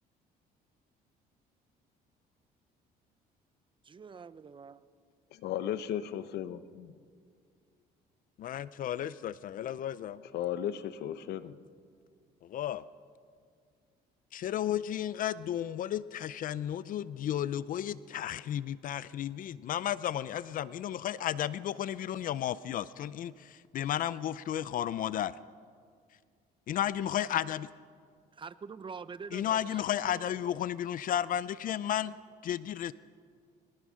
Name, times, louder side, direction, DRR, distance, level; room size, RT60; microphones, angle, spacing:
voice 1, 3.8-4.8 28.3-30.6, right 5 dB, 30° right, 0.7 m, -46 dB
voice 2, 5.3-6.9 10.3-11.6, left 10 dB, 75° left, 0.9 m, -35 dB
voice 3, 8.4-10.2 12.4-12.8 14.3-25.4 26.7-27.7 29.3-32.1 32.4-32.9, left 11 dB, 55° left, 0.5 m, -33 dB
22.5 x 19.0 x 6.4 m
cardioid pair, 110°, 17 cm